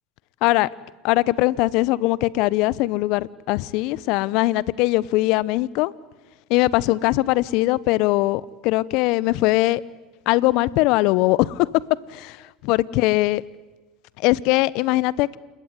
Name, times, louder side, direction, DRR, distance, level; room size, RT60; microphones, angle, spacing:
voice 1, 1.0-5.9 6.5-9.8 10.3-11.7 12.1-12.4 12.6-13.4 14.2-15.4, left 19 dB, 60° left, 0.9 m, -21 dB
28.5 x 21.0 x 9.6 m
hypercardioid pair, 80°, 0 cm